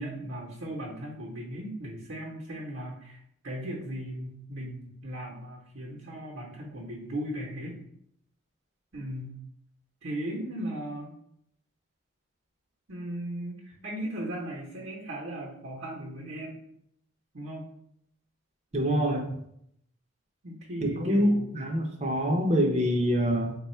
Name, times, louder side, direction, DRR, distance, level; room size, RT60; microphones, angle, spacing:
voice 1, 0.0-3.2 3.4-7.8 8.9-9.4 10.0-11.1 12.9-16.6 17.3-17.7 20.4-21.5, right 1 dB, 60° right, -4 dB, 0.8 m, -37 dB
voice 2, 18.7-19.3 20.8-23.5, equal, 30° right, 2 dB, 0.6 m, -25 dB
3.5 x 2.3 x 4.3 m, 0.71 s
head